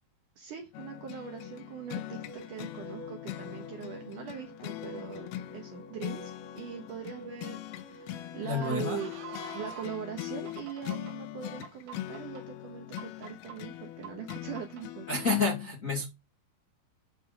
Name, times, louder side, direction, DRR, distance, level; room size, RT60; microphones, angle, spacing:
voice 1, 0.4-9.1 9.5-15.1, right 8 dB, 65° right, 2.3 m, -41 dB
sound 1, 0.7-15.4, left 14 dB, 80° left, 2.4 m, -41 dB
sound 2, 1.0-10.0 10.5-11.1 11.6-12.4 13.0-13.6 14.0-14.8, right 4 dB, 85° right, 4.4 m, -48 dB
voice 2, 8.4-9.0 15.1-16.1, left 4 dB, 30° left, 1.7 m, -29 dB
11.0 x 4.7 x 5.2 m
omnidirectional pair, 4.8 m